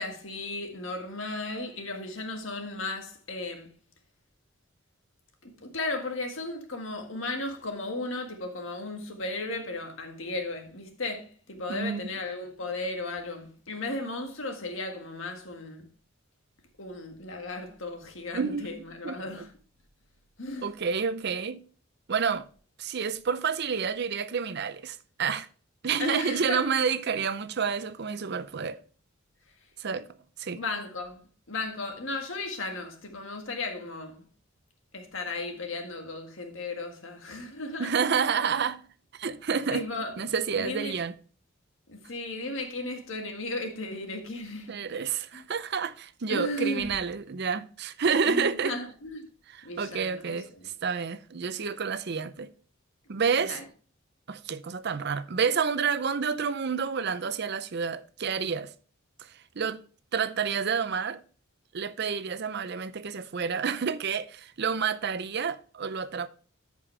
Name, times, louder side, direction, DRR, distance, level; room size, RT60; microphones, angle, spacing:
voice 1, 0.0-3.7 5.4-15.9 16.8-19.5 20.4-20.7 26.0-26.7 30.5-34.3 34.9-37.9 39.7-40.2 40.5-41.0 41.9-44.8 45.3-45.4 46.3-46.9 48.3-49.3 49.6-50.7 53.4-53.7, left 2 dB, 70° left, 1.7 m, -35 dB
voice 2, 11.7-12.0 18.3-18.8 19.0-19.2 20.6-21.6 22.1-22.5 22.8-25.5 25.8-28.8 29.8-30.1 30.4-30.6 37.8-38.8 39.1-39.9 40.2-41.1 44.7-48.7 49.8-50.5 50.8-52.5 53.1-53.6 54.3-58.7 59.2-59.3 59.6-59.8 60.1-61.2 61.7-66.3, right 6 dB, 55° right, 0.6 m, -29 dB
13.5 x 5.3 x 3.3 m
head